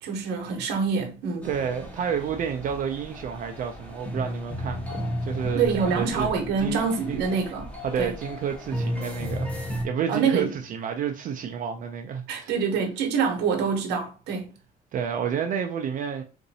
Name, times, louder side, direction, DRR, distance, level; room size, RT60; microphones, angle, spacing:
voice 1, 0.0-1.5 5.5-7.7 8.0-8.1 10.1-10.5 12.3-14.5, right 5 dB, 85° right, 0.9 m, -26 dB
sound 1, 1.4-9.8, equal, 10° left, 1.0 m, -33 dB
voice 2, 1.4-6.3 6.6-7.3 7.8-9.5 9.8-12.5 14.9-16.2, right 7 dB, 50° right, 0.4 m, -30 dB
3.9 x 2.6 x 2.7 m
cardioid pair, 110°, 17 cm